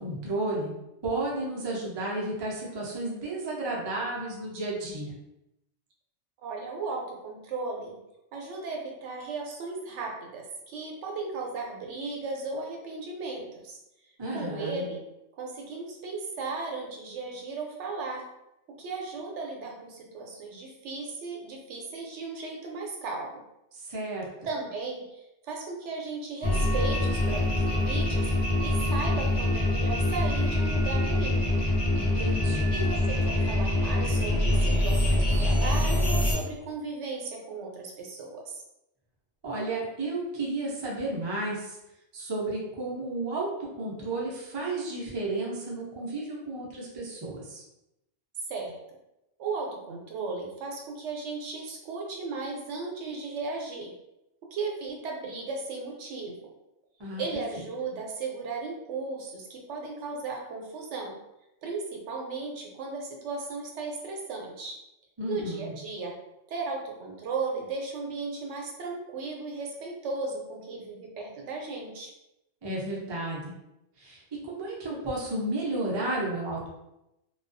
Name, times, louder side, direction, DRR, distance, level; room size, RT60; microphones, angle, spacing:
voice 1, 0.0-0.7 1.0-5.2 14.2-14.8 23.7-24.3 32.0-32.7 39.4-41.8 42.1-43.5 43.8-47.6 57.0-57.2 57.5-57.7 65.2-65.7 72.6-73.5 74.0-76.7, right 2 dB, 40° right, -4 dB, 0.3 m, -32 dB
voice 2, 6.4-7.9 8.3-13.8 14.3-15.0 15.4-18.2 18.7-23.4 24.4-28.3 28.6-31.4 32.7-38.6 48.5-48.8 49.4-53.9 54.5-56.3 57.2-61.1 61.6-64.7 65.3-66.1 66.5-72.1, right 3 dB, 75° right, 0 dB, 0.9 m, -36 dB
sound 1, 26.4-36.3, left 1 dB, 40° left, 0.4 m, -25 dB
2.3 x 2.2 x 2.5 m, 0.89 s
omnidirectional pair, 1.2 m